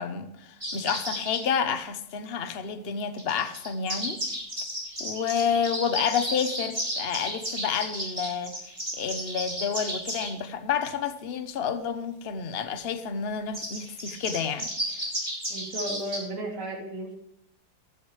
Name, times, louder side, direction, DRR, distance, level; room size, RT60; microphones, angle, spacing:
voice 1, 0.0-4.2 5.0-8.5 9.0-15.0, left 7 dB, 40° left, 1.1 m, -29 dB
sound 1, 0.6-1.4 3.2-10.3 13.5-16.2, equal, 20° right, 5.1 m, -33 dB
voice 2, 15.5-17.1, right 1 dB, 50° right, 3.2 m, -34 dB
14.5 x 12.0 x 3.3 m
omnidirectional pair, 1.7 m